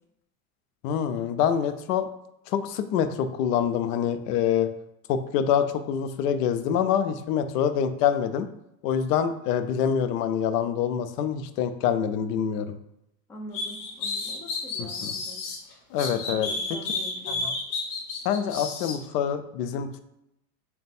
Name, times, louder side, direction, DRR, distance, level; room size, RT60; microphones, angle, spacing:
voice 1, 0.8-2.1 2.5-4.7 5.1-8.5 8.8-12.8 14.8-15.1 15.9-16.5 17.3-17.5 18.2-20.0, left 8 dB, 90° left, 9 dB, 0.6 m, -26 dB
voice 2, 13.3-15.4 16.1-17.4, left 2 dB, 5° left, -1 dB, 0.4 m, -43 dB
sound 1, 13.5-15.6 16.0-19.0, left 3 dB, 40° left, 1.1 m, -31 dB
4.0 x 2.2 x 4.1 m, 0.84 s
supercardioid pair, 135°, 46 cm